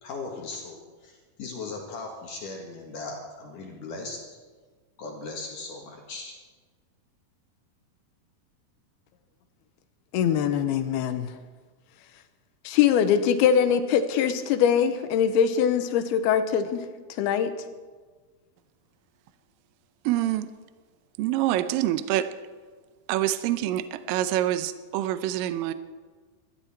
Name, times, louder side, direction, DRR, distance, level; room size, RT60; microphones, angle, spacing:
voice 1, 0.0-4.2 5.0-6.4, left 3 dB, 60° left, 0 dB, 3.1 m, -38 dB
voice 2, 10.1-11.3 12.6-16.8 17.2-17.5, left 8 dB, 80° left, 9 dB, 2.8 m, -22 dB
voice 3, 20.0-20.5 21.2-22.3 23.1-25.7, right 13 dB, 80° right, 12 dB, 2.1 m, -26 dB
20.5 x 14.0 x 4.5 m, 1.4 s
omnidirectional pair, 4.5 m